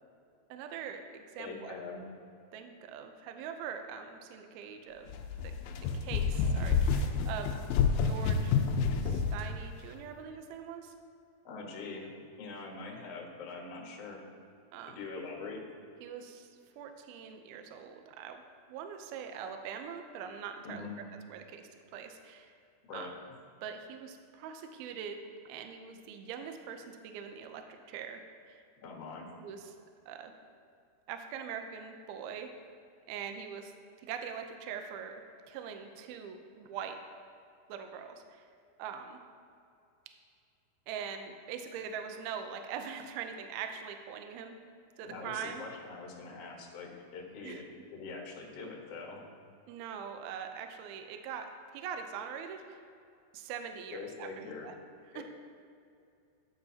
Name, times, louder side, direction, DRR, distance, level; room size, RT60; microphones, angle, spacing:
voice 1, 0.5-1.7 2.5-5.1 5.4-5.5 5.9-7.5 8.0-8.5 9.0-10.9 14.7-15.0 16.0-16.5 16.8-18.4 18.7-20.9 21.3-22.6 22.9-23.1 23.6-25.2 25.5-28.2 28.5-28.6 29.4-29.8 30.1-30.3 31.1-32.5 33.1-33.7 34.0-35.2 35.5-37.0 37.7-38.5 38.8-39.2 40.9-44.6 45.0-45.7 47.4-47.6 49.7-51.5 51.7-52.8 53.3-54.7 55.1-55.2, right 7 dB, 80° right, 6 dB, 2.4 m, -42 dB
voice 2, 1.4-2.0 11.4-14.2 14.9-15.6 20.6-21.0 22.9-23.1 28.8-29.3 45.0-47.6 47.9-49.3 53.9-54.7 55.1-55.2, left 4 dB, 60° left, -1 dB, 1.7 m, -43 dB
sound 1, 5.1-9.4, left 5 dB, 80° left, 2.0 m, -29 dB
14.0 x 9.5 x 2.8 m, 2.5 s
omnidirectional pair, 4.8 m